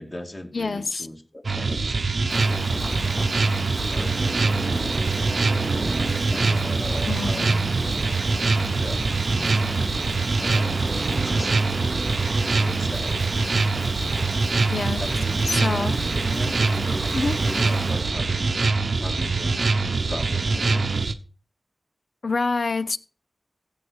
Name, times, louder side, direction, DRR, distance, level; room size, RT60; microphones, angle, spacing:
voice 1, 0.0-2.0 2.5-3.0 3.9-5.1 6.1-7.6 8.2-9.0 9.6-9.8 10.4-11.7 12.6-13.2 13.7-14.0 15.0-18.5 19.0-21.0, left 1 dB, 40° left, 2.7 m, -38 dB
voice 2, 0.5-1.1 7.1-7.5 14.7-15.0 15.5-15.9 17.1-17.4 22.2-23.0, left 3 dB, 75° left, 0.7 m, -26 dB
sound 1, 1.4-21.1, right 3 dB, 85° right, 0.9 m, -24 dB
Rain, 2.3-18.1, equal, 10° right, 0.6 m, -35 dB
sound 2, 3.7-21.1, right 3 dB, 65° right, 0.5 m, -34 dB
15.0 x 7.2 x 4.8 m
cardioid pair, 45°, 0 cm